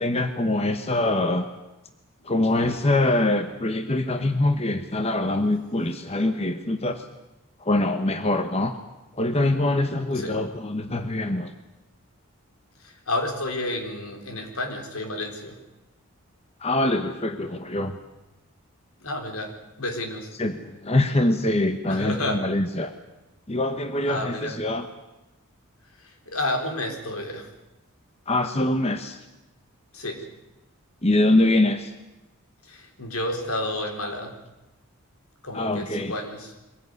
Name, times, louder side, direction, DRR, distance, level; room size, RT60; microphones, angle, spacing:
voice 1, 0.0-1.5 2.2-7.0 7.6-8.7 9.2-11.5 16.6-18.0 20.4-22.9 23.5-24.9 28.3-29.2 31.0-31.9 35.5-36.1, left 2 dB, 30° left, 8 dB, 1.1 m, -24 dB
voice 2, 2.4-2.7 10.1-10.4 10.8-11.0 12.8-15.6 19.0-20.3 21.9-22.5 24.1-24.6 26.0-27.5 29.9-30.3 32.6-34.4 35.4-36.5, left 1 dB, 80° left, 4 dB, 4.0 m, -31 dB
23.0 x 17.0 x 9.5 m, 1.0 s
head